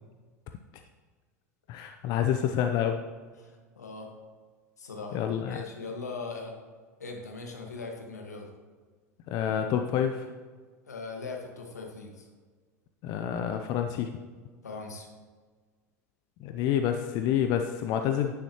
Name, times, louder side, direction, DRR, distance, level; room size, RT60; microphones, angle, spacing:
voice 1, 1.7-3.0 5.1-5.6 9.3-10.3 13.0-14.1 16.4-18.3, left 9 dB, 50° left, 6 dB, 0.7 m, -28 dB
voice 2, 3.4-4.1 4.8-6.5 7.0-8.5 10.9-12.3 14.6-15.1 18.1-18.2, left 4 dB, 85° left, 2 dB, 1.7 m, -40 dB
10.0 x 9.8 x 3.0 m, 1.5 s
figure-of-eight pair, 80°, 9 cm